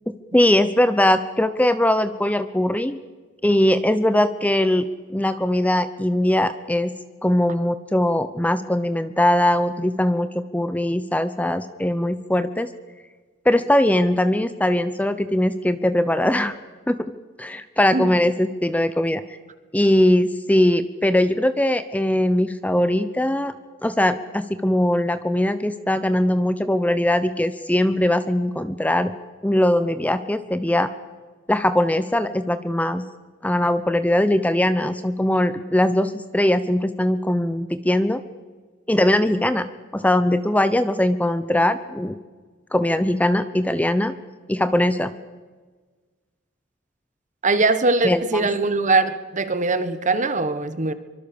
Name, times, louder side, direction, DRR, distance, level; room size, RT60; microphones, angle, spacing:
voice 1, 0.3-3.0 3.4-4.8 5.1-6.9 7.2-12.7 13.4-16.6 16.9-17.0 17.4-19.4 19.7-23.5 23.8-29.1 29.4-30.9 31.5-33.0 33.4-38.2 38.9-39.7 39.9-42.2 42.7-44.1 44.5-45.1 48.0-48.5, left 1 dB, 5° left, 11 dB, 0.7 m, -20 dB
voice 2, 47.4-50.9, right 3 dB, 35° right, 12 dB, 1.4 m, -21 dB
24.5 x 24.0 x 7.0 m, 1.4 s
head